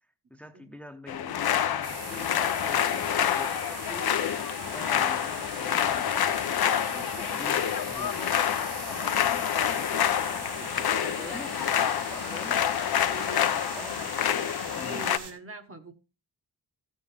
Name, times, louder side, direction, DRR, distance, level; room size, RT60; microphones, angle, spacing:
voice 1, 0.3-4.1 4.6-12.6 13.3-15.1, equal, 5° left, 0.8 m, -46 dB
sound 1, 1.1-15.2, left 9 dB, 65° left, 0.7 m, -27 dB
sound 2, 1.8-15.3, right 5 dB, 80° right, 2.4 m, -42 dB
voice 2, 11.9-12.3 12.9-14.1 14.8-15.9, right 3 dB, 35° right, 1.1 m, -45 dB
13.0 x 7.5 x 3.3 m
wide cardioid pair, 100°, 41 cm